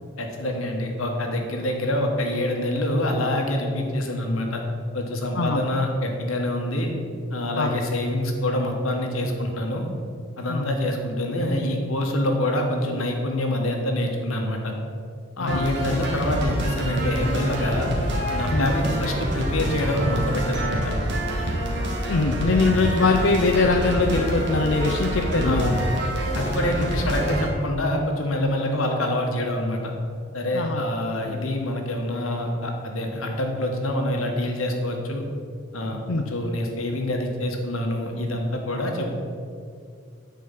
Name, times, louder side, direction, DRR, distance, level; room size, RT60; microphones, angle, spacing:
voice 1, 0.2-4.6 4.9-6.9 7.3-9.9 10.4-14.7 15.4-17.9 18.3-20.8 22.7-22.8 25.4-25.8 26.3-29.9 30.3-35.2 35.7-36.0 36.3-39.1, left 1 dB, 80° left, 2 dB, 1.5 m, -26 dB
sound 1, 15.5-27.5, equal, 55° right, 1.7 m, -26 dB
voice 2, 22.1-25.6 26.6-26.7 30.5-30.8 36.1-36.2, left 3 dB, 60° left, 3 dB, 0.6 m, -22 dB
9.3 x 4.7 x 7.5 m, 2.3 s
head